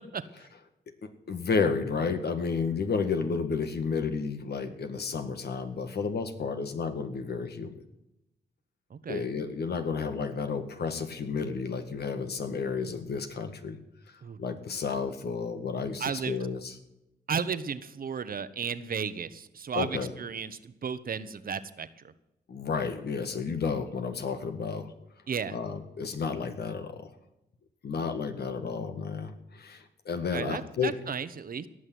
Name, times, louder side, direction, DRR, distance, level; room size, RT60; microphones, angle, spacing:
voice 1, 1.0-7.8 9.1-13.8 14.1-16.7 19.7-20.1 22.5-24.9 25.5-27.1 27.8-30.9, left 5 dB, 65° left, 8 dB, 1.8 m, -32 dB
voice 2, 8.9-9.3 14.2-14.4 16.0-16.4 17.3-22.1 25.3-25.5 30.1-31.7, right 6 dB, 55° right, 13 dB, 1.1 m, -34 dB
17.5 x 6.4 x 9.4 m, 0.89 s
supercardioid pair, 55°, 18 cm